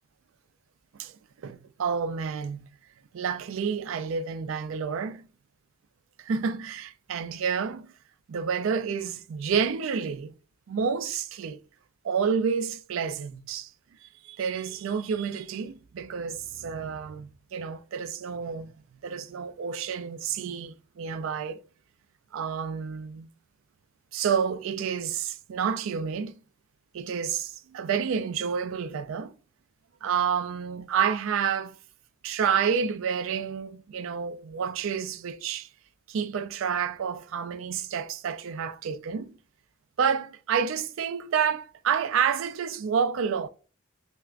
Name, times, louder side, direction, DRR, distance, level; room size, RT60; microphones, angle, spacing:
voice 1, 1.4-2.7 3.1-5.2 6.2-7.9 8.3-10.3 10.7-11.6 12.0-13.7 14.0-18.7 19.0-21.6 22.3-23.3 24.1-26.4 26.9-29.3 30.0-31.8 32.2-35.7 36.1-39.3 40.0-43.5, right 6 dB, 80° right, 0.3 m, -29 dB
4.5 x 2.1 x 2.4 m
head